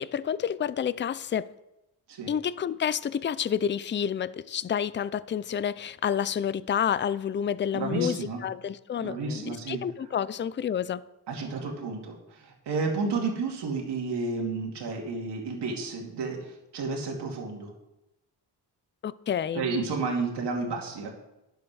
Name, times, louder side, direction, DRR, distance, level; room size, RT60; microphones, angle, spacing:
voice 1, 0.0-1.5 2.3-11.0 19.0-19.8, left 8 dB, 30° left, 0.4 m, -29 dB
voice 2, 7.7-8.4 9.0-9.8 11.3-17.7 19.5-21.2, right 3 dB, 85° right, 2.6 m, -31 dB
11.0 x 7.5 x 6.2 m
cardioid pair, 95°, 40 cm